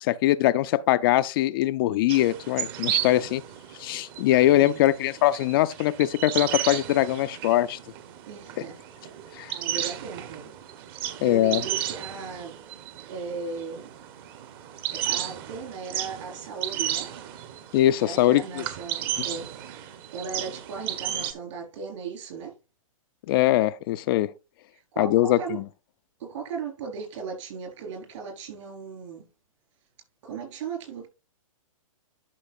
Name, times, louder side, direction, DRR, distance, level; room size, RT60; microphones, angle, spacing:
voice 1, 0.0-3.4 3.8-7.8 9.4-9.5 11.2-11.6 17.7-18.6 23.3-24.3 25.0-25.6, left 14 dB, 40° left, 0.4 m, -22 dB
sound 1, 2.1-21.3, right 11 dB, 40° right, 1.1 m, -34 dB
voice 2, 4.5-4.8 8.3-8.8 9.5-10.5 10.9-12.6 13.0-13.9 14.9-17.1 18.0-19.5 20.1-22.5 24.9-25.6 26.2-29.3 30.2-31.1, right 5 dB, 60° right, 4.5 m, -37 dB
11.5 x 5.7 x 2.5 m
hypercardioid pair, 125°, 18 cm